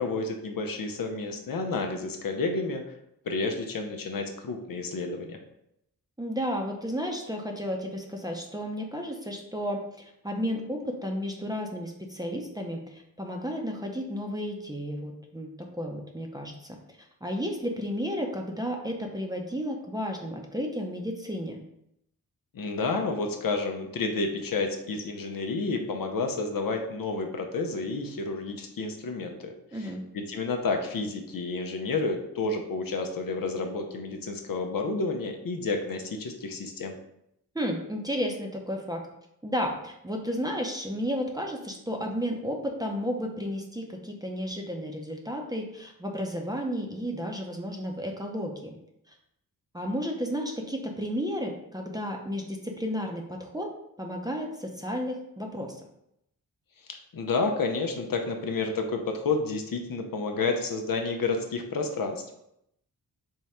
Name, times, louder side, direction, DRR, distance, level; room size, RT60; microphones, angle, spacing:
voice 1, 0.0-2.8 3.3-5.4 22.5-29.9 30.3-37.0 56.9-62.3, left 3 dB, 60° left, 4 dB, 0.6 m, -30 dB
voice 2, 6.2-16.8 17.2-21.6 29.7-30.0 37.5-39.0 39.4-48.7 49.7-53.7 54.0-55.8, equal, 10° right, 1 dB, 0.6 m, -32 dB
3.6 x 2.1 x 4.2 m, 0.79 s
cardioid pair, 50°, 38 cm